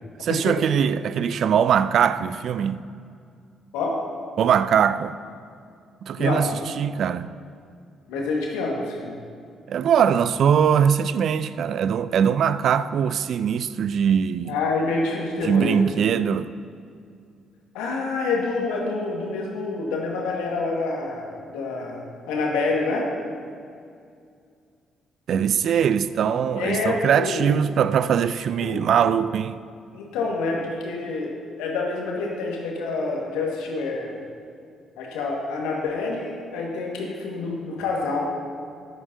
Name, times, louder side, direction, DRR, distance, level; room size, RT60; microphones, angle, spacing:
voice 1, 0.2-2.8 4.4-5.1 6.0-6.5 6.8-7.3 9.7-14.5 15.4-16.5 25.3-29.6, right 8 dB, 60° right, 0.3 m, -21 dB
voice 2, 6.2-6.5 8.1-9.2 14.5-15.8 17.7-23.1 26.5-27.5 28.6-28.8 29.9-31.3 31.6-34.2 35.0-38.2, left 3 dB, 75° left, 1.6 m, -27 dB
14.5 x 10.0 x 2.7 m
hypercardioid pair, 45°, 0 cm